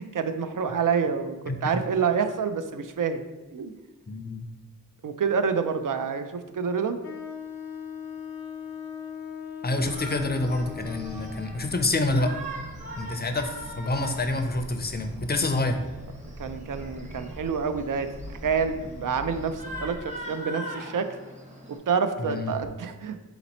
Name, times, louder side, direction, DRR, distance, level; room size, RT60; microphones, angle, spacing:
voice 1, 0.0-3.2 3.5-3.7 5.0-7.0 16.4-21.1 21.9-23.2, right 6 dB, 60° right, 9 dB, 0.4 m, -28 dB
voice 2, 1.5-1.8 4.1-4.5 9.6-12.3 13.0-15.8 22.2-22.6, left 2 dB, 30° left, 7 dB, 0.5 m, -27 dB
Wind instrument woodwind instrument, 7.0-11.5, left 7 dB, 75° left, 0.5 m, -39 dB
Shout, 9.6-21.8, right 1 dB, 20° right, 0.8 m, -42 dB
sound 1, 9.8-20.0, equal, 80° right, 1.1 m, -43 dB
4.0 x 2.9 x 4.0 m, 1.1 s
wide cardioid pair, 55°, 36 cm